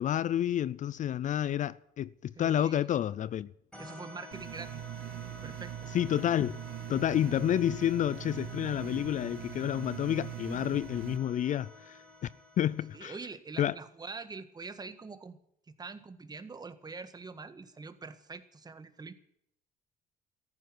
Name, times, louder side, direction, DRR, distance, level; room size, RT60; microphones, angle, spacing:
voice 1, 0.0-3.5 5.9-6.6 6.9-12.3 12.6-13.2 13.6-13.7, left 11 dB, 50° left, 0.5 m, -30 dB
voice 2, 2.3-3.0 3.8-4.8 5.4-5.9 12.9-15.4 15.7-19.1, right 4 dB, 25° right, 1.6 m, -44 dB
sound 1, 3.7-13.2, left 2 dB, 5° left, 5.3 m, -50 dB
sound 2, 4.3-11.2, right 16 dB, 80° right, 0.8 m, -42 dB
14.5 x 10.5 x 9.5 m
cardioid pair, 110°, 17 cm